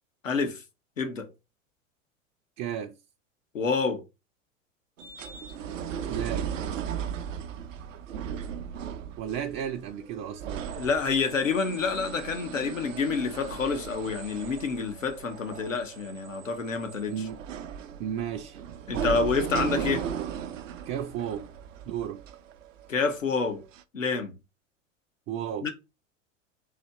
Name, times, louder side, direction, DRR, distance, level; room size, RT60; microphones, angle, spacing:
voice 1, 0.2-0.6 1.0-1.3 3.5-4.0 10.8-17.1 18.9-20.1 22.9-23.6 23.9-24.3 25.6-25.7, left 4 dB, 85° left, 0.9 m, -28 dB
voice 2, 2.6-2.9 6.1-6.5 9.2-10.7 17.1-17.4 18.0-18.6 20.9-21.5 21.9-22.2 25.3-25.7, right 9 dB, 35° right, 0.5 m, -33 dB
sound 1, 5.0-23.2 23.7-23.8, right 8 dB, 75° right, 0.6 m, -37 dB
4.1 x 2.8 x 4.0 m
figure-of-eight pair, 85°, 38 cm